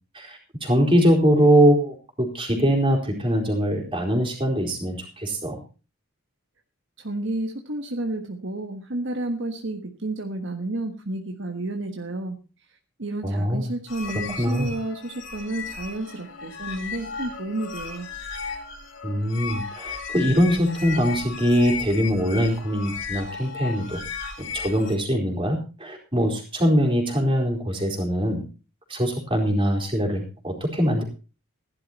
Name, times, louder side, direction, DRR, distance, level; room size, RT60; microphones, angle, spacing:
voice 1, 0.1-5.6 13.2-13.7 14.1-14.7 19.0-24.0 24.4-28.4 28.9-31.0, equal, 25° right, 1 dB, 4.2 m, -22 dB
voice 2, 7.0-12.4 13.0-18.1, right 2 dB, 60° right, 4 dB, 1.5 m, -31 dB
sound 1, 13.9-24.9, left 5 dB, 60° left, 3.5 m, -35 dB
15.5 x 11.5 x 4.2 m, 0.34 s
head